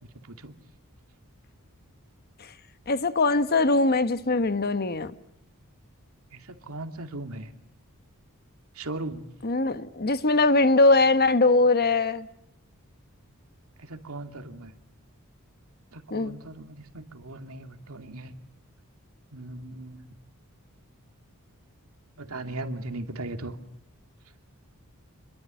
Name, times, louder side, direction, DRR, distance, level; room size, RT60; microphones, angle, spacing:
voice 1, 2.9-5.1 9.4-12.3 16.1-16.4, left 3 dB, 45° left, 1.2 m, -21 dB
voice 2, 6.3-7.5 8.8-9.3 13.8-14.7 15.9-18.3 19.3-20.0 22.2-23.6, right 2 dB, 75° right, 2.6 m, -38 dB
28.5 x 22.5 x 7.7 m
head